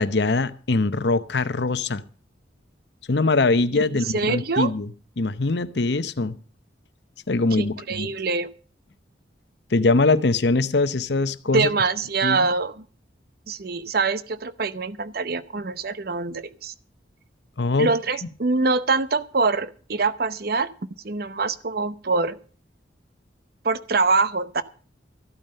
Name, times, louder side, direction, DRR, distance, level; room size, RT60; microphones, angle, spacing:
voice 1, 0.0-2.0 3.1-4.9 5.2-6.3 7.3-8.1 9.7-11.7 12.2-12.4 17.6-17.9, left 3 dB, 65° left, 13 dB, 0.8 m, -22 dB
voice 2, 3.7-4.7 7.6-8.5 11.5-12.9 13.5-16.7 17.8-20.7 21.0-22.4 23.6-24.6, right 4 dB, 55° right, 15 dB, 0.7 m, -24 dB
14.0 x 9.0 x 6.5 m, 0.41 s
head